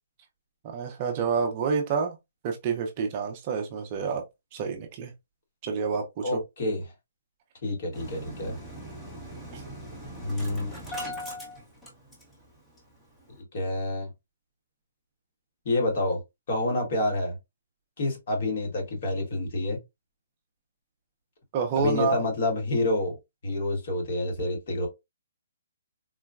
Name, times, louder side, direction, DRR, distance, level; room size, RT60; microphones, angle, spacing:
voice 1, 0.6-2.2 2.4-4.2 4.5-5.1 5.6-6.4 9.5-9.6 21.5-22.2, right 5 dB, 25° right, 0.4 m, -28 dB
voice 2, 6.2-6.8 7.6-8.5 10.2-10.8 13.5-14.1 15.6-16.2 16.5-17.4 18.0-19.8 21.8-23.2 23.4-24.9, left 2 dB, 40° left, 1.1 m, -28 dB
Engine starting, 7.9-12.5 12.8-12.9 13.2-13.4, equal, 5° left, 0.7 m, -39 dB
3.7 x 2.1 x 2.3 m
hypercardioid pair, 170°, 0 cm